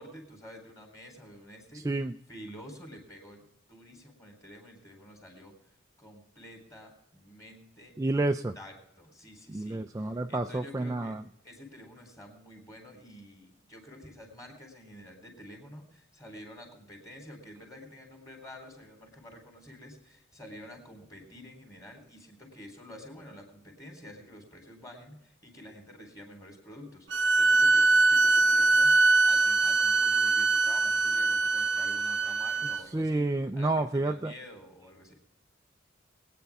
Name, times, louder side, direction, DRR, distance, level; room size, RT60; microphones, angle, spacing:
voice 1, 0.0-2.0 2.3-5.6 6.0-11.2 11.4-35.1, left 1 dB, 20° left, 2 dB, 3.5 m, -49 dB
voice 2, 1.7-2.1 8.0-8.5 9.5-11.2 32.9-34.3, right 2 dB, 15° right, 6 dB, 0.3 m, -29 dB
sound 1, 27.1-32.8, right 3 dB, 70° right, 0.7 m, -23 dB
22.5 x 9.2 x 3.5 m, 0.81 s
head